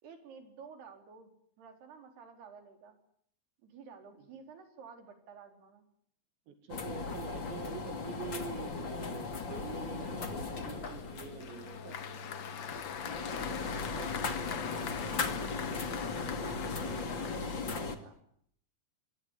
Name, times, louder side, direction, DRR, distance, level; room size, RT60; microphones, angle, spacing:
voice 1, 0.0-1.3 1.6-3.0 3.6-5.8 13.0-18.2, right 6 dB, 65° right, 6 dB, 6.2 m, -52 dB
voice 2, 6.5-12.0, right 7 dB, 85° right, 7 dB, 4.5 m, -46 dB
sound 1, 6.7-18.0, left 4 dB, 35° left, 2.4 m, -38 dB
Applause, 10.8-17.9, left 8 dB, 70° left, 1.3 m, -43 dB
26.5 x 22.0 x 9.9 m, 0.67 s
omnidirectional pair, 5.0 m